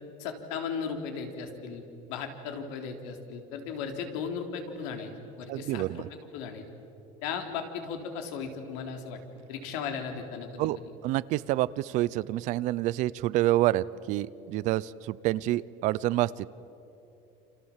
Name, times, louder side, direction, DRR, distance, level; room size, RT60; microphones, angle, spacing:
voice 1, 0.2-1.8 2.1-5.1 5.4-6.6 7.2-9.2 9.5-10.7, left 6 dB, 90° left, 5 dB, 3.7 m, -36 dB
voice 2, 5.5-6.1 10.6-10.8 11.0-16.5, right 16 dB, 45° right, 19 dB, 0.6 m, -28 dB
29.0 x 27.5 x 7.4 m, 2.9 s
cardioid pair, 175°, 17 cm